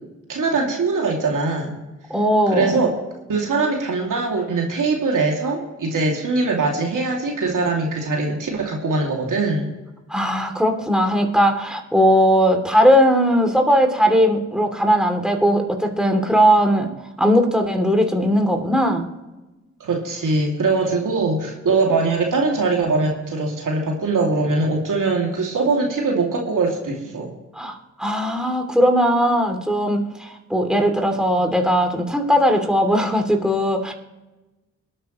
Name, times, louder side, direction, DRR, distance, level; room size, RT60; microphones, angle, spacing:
voice 1, 0.3-1.8 2.5-2.9 3.3-9.7 19.8-27.3, right 3 dB, 75° right, 0 dB, 2.7 m, -22 dB
voice 2, 2.1-2.8 10.1-16.9 17.2-19.1 27.5-33.9, equal, ahead, 3 dB, 3.0 m, -18 dB
22.5 x 8.9 x 3.2 m, 1.1 s
supercardioid pair, 40°, 32 cm